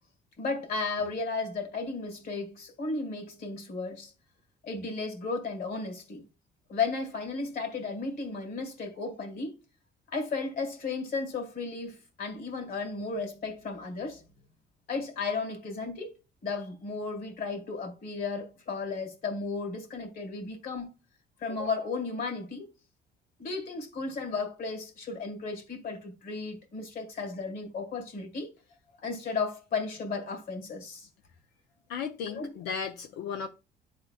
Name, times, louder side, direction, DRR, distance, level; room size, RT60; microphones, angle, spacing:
voice 1, 0.4-4.1 4.6-6.2 6.7-9.5 10.1-14.2 14.9-16.1 16.4-20.9 21.4-22.7 23.4-28.5 29.0-31.1 32.3-32.5, left 4 dB, 60° left, 2.0 m, -34 dB
voice 2, 31.9-33.5, left 6 dB, 85° left, 0.6 m, -35 dB
11.0 x 3.8 x 2.4 m
cardioid pair, 110°, 17 cm